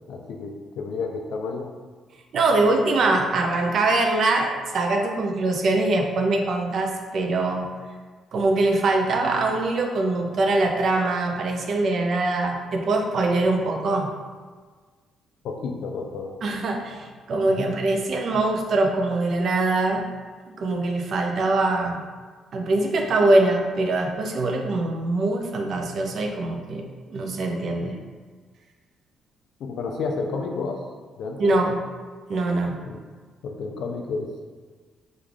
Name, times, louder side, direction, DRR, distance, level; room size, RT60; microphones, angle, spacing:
voice 1, 0.1-1.7 15.4-16.4 17.6-17.7 18.3-18.4 27.8-28.0 29.6-30.8 31.2-31.6 32.9-33.0 33.4-34.3, left 4 dB, 60° left, 2 dB, 0.3 m, -31 dB
voice 2, 2.3-7.7 8.3-14.1 16.4-20.0 20.6-22.0 22.5-26.8 27.1-28.0 31.4-31.8 32.3-32.8, right 2 dB, 40° right, 2 dB, 0.4 m, -23 dB
3.1 x 2.3 x 3.7 m, 1.5 s
cardioid pair, 180°, 0 cm